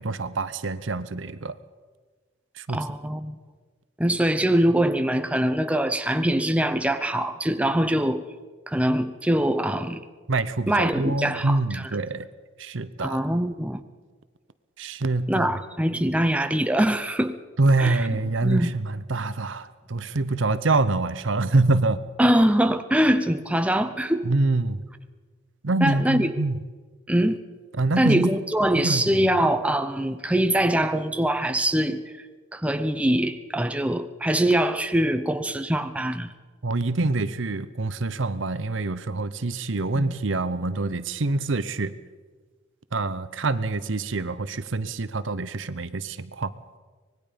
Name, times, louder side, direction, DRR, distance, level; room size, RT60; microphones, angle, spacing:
voice 1, 0.0-1.5 2.6-2.8 10.3-12.3 12.6-13.2 14.8-15.5 17.6-22.0 24.2-24.8 25.6-26.6 27.8-28.3 28.8-29.3 36.6-41.9 42.9-46.5, right 2 dB, 60° right, 14 dB, 0.8 m, -25 dB
voice 2, 2.7-3.3 4.0-8.2 8.7-10.0 10.7-11.8 13.0-13.8 15.3-17.4 17.8-18.1 18.4-18.7 22.2-24.3 25.8-26.3 27.1-27.4 28.0-32.0 32.5-36.3 40.0-40.1, right 1 dB, 5° right, 9 dB, 0.7 m, -23 dB
24.5 x 20.0 x 5.2 m, 1.4 s
head